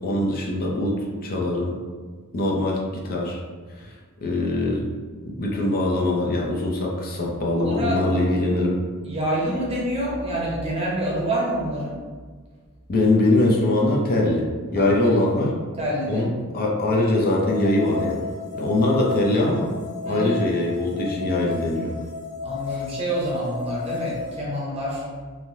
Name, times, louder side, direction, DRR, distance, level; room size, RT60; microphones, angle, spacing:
voice 1, 0.0-1.8 2.3-3.4 3.8-3.9 4.2-4.8 5.2-8.7 12.9-15.5 16.1-18.2 18.5-19.7 20.1-22.0 22.7-22.8, left 1 dB, 40° left, -2 dB, 0.5 m, -22 dB
voice 2, 7.5-8.0 9.0-11.9 14.8-14.9 15.8-16.3 20.0-20.4 22.4-25.1, right 1 dB, 25° right, -3 dB, 0.7 m, -27 dB
sound 1, 17.5-24.4, left 6 dB, 80° left, 0.7 m, -33 dB
3.2 x 2.7 x 2.6 m, 1.5 s
head